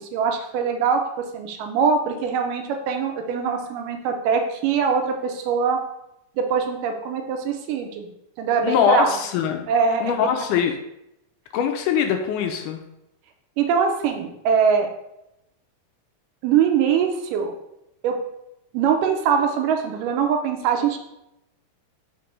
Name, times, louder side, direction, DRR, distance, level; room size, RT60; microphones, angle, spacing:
voice 1, 0.0-5.8 6.4-8.1 8.4-9.2 9.7-10.2 13.6-14.9 16.4-17.5 18.0-18.2 18.7-21.0, right 6 dB, 75° right, 4 dB, 2.2 m, -22 dB
voice 2, 8.6-9.7 10.0-10.7 11.5-12.8, left 8 dB, 80° left, 5 dB, 1.8 m, -22 dB
5.8 x 3.4 x 5.2 m, 0.85 s
omnidirectional pair, 4.1 m